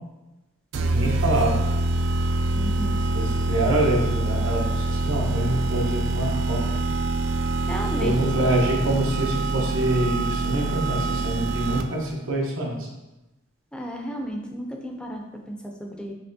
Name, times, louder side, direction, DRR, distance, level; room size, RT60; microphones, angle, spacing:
sound 1, 0.7-12.1, right 2 dB, 65° right, 0.3 m, -25 dB
voice 1, 0.9-1.6 3.1-6.8 8.0-12.9, right 1 dB, 80° right, -2 dB, 1.0 m, -25 dB
voice 2, 2.5-3.0 7.6-8.2 13.7-16.1, equal, 5° left, 1 dB, 0.4 m, -33 dB
5.6 x 3.2 x 2.6 m, 1.0 s
head